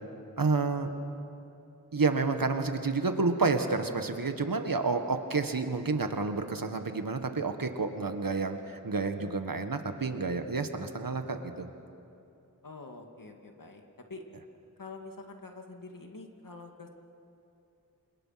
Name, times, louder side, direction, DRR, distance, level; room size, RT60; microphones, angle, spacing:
voice 1, 0.4-0.9 1.9-11.7, right 4 dB, 75° right, 7 dB, 1.7 m, -30 dB
voice 2, 12.6-13.8 14.1-14.2 14.8-16.9, left 3 dB, 70° left, 3 dB, 2.5 m, -46 dB
28.0 x 27.0 x 6.0 m, 2.7 s
wide cardioid pair, 45°, 34 cm